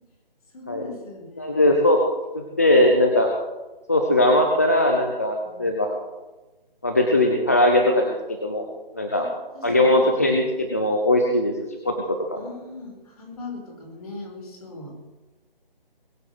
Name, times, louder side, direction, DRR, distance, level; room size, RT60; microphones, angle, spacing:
voice 1, 0.5-1.8 5.4-5.7 9.2-9.3 9.5-10.3 12.3-15.0, left 2 dB, 40° left, 1 dB, 5.0 m, -40 dB
voice 2, 1.4-2.0 2.3-3.3 3.9-5.9 6.8-8.1 8.4-8.6 9.0-9.3 9.6-11.5 11.8-12.4, left 1 dB, 15° left, 2 dB, 0.7 m, -20 dB
21.5 x 7.3 x 7.9 m, 1.1 s
figure-of-eight pair, 170°, 30 cm